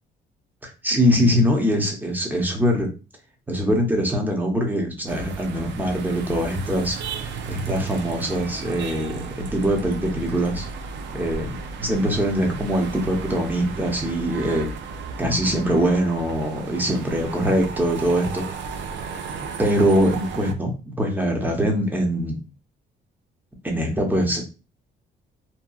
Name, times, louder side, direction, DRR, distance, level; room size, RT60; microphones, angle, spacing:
voice 1, 0.6-2.9 3.5-10.7 11.1-14.7 15.2-18.4 19.6-22.4 23.6-24.5, equal, 10° right, 1 dB, 0.8 m, -23 dB
sound 1, 5.1-20.5, right 5 dB, 65° right, 0.5 m, -34 dB
2.8 x 2.3 x 2.3 m, 0.31 s
cardioid pair, 90°, 20 cm